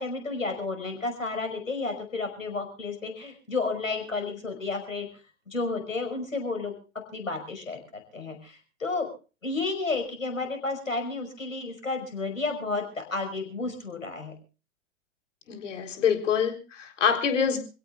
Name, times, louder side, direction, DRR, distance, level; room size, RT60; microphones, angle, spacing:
voice 1, 0.0-5.1 5.5-6.7 7.1-9.1 9.4-14.3, left 3 dB, 90° left, 5 dB, 5.6 m, -32 dB
voice 2, 15.5-17.6, left 7 dB, 70° left, 5 dB, 4.0 m, -25 dB
27.5 x 17.0 x 2.5 m, 0.34 s
figure-of-eight pair, 95°, 38 cm